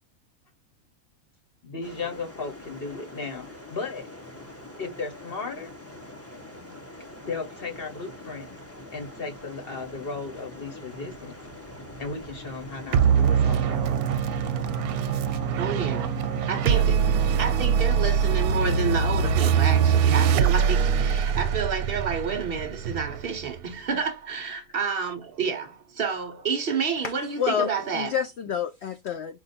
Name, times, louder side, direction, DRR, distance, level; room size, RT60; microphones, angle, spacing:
voice 1, 1.6-4.1 4.8-5.7 7.3-8.5 8.9-11.3 12.0-13.9 16.7-16.9, left 4 dB, 40° left, 1.1 m, -35 dB
sound 1, 1.8-21.6, left 1 dB, 10° left, 0.7 m, -42 dB
sound 2, 12.9-23.7, right 7 dB, 75° right, 1.0 m, -23 dB
voice 2, 15.6-16.1 16.5-17.0 17.3-28.1, right 6 dB, 55° right, 0.7 m, -29 dB
voice 3, 27.0-29.4, left 8 dB, 80° left, 0.6 m, -29 dB
4.7 x 2.4 x 4.1 m
omnidirectional pair, 1.7 m